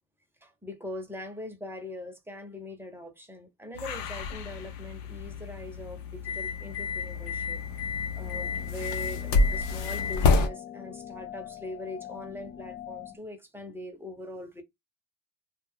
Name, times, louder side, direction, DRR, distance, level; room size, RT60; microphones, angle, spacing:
voice 1, 0.4-14.6, left 1 dB, 5° right, 0.8 m, -42 dB
sound 1, 3.7-10.5, left 4 dB, 70° left, 0.8 m, -29 dB
sound 2, 8.2-13.2, left 10 dB, 30° left, 0.4 m, -44 dB
2.3 x 2.3 x 3.3 m
cardioid pair, 100°, 44 cm